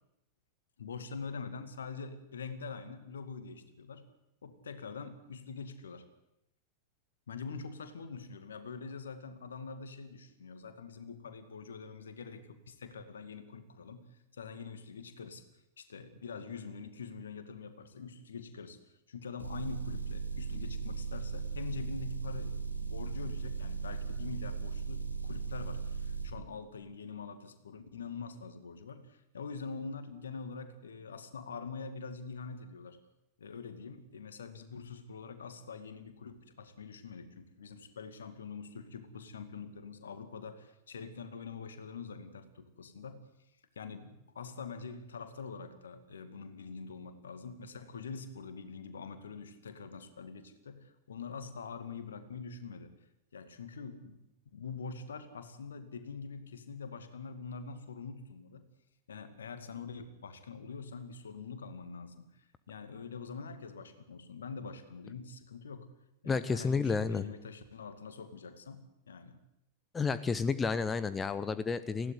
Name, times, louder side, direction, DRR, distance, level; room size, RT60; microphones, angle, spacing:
voice 1, 0.8-4.1 4.4-6.0 7.3-15.4 15.8-18.8 19.1-33.0 33.4-43.3 43.8-52.9 53.3-54.2 54.5-58.7 59.1-65.9 66.2-69.4, left 5 dB, 70° left, 10 dB, 2.3 m, -44 dB
Motor vehicle (road) / Engine, 19.4-26.3, right 5 dB, 85° left, 2.5 m, -37 dB
voice 2, 66.3-67.2 69.9-72.1, left 5 dB, 15° left, 14 dB, 0.8 m, -31 dB
20.0 x 16.0 x 9.7 m, 0.83 s
figure-of-eight pair, 90°, 0 cm